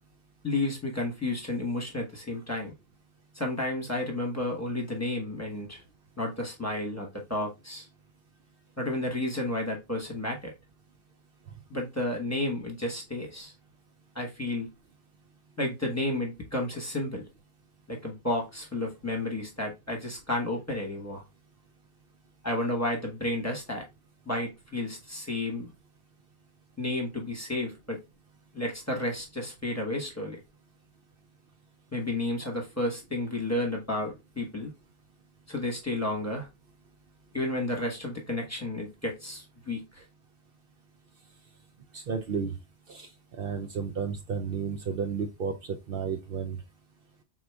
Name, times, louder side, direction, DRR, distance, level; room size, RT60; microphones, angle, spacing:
voice 1, 0.4-2.7 3.3-5.8 6.2-7.9 8.8-10.5 11.7-13.5 14.1-14.7 15.6-17.3 17.9-21.2 22.4-23.8 24.2-25.7 26.8-28.0 28.5-30.4 31.9-34.7 35.5-36.5 37.3-40.0, left 1 dB, 15° left, 1.1 m, -32 dB
voice 2, 41.9-42.5 42.9-43.1 43.4-45.5 45.9-46.6, right 6 dB, 65° right, 0.7 m, -32 dB
4.7 x 3.9 x 2.3 m
omnidirectional pair, 1.1 m